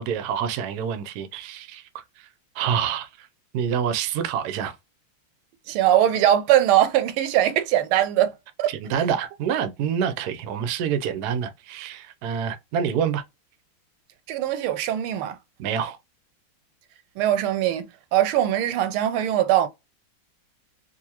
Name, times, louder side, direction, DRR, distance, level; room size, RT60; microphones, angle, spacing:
voice 1, 0.0-2.0 2.6-3.3 3.5-4.7 8.7-13.2 15.6-16.0, right 8 dB, 70° right, 0.9 m, -27 dB
voice 2, 5.7-8.3 8.6-8.7 14.3-15.4 17.2-19.7, right 12 dB, 90° right, 1.5 m, -21 dB
3.8 x 2.6 x 2.9 m
omnidirectional pair, 2.3 m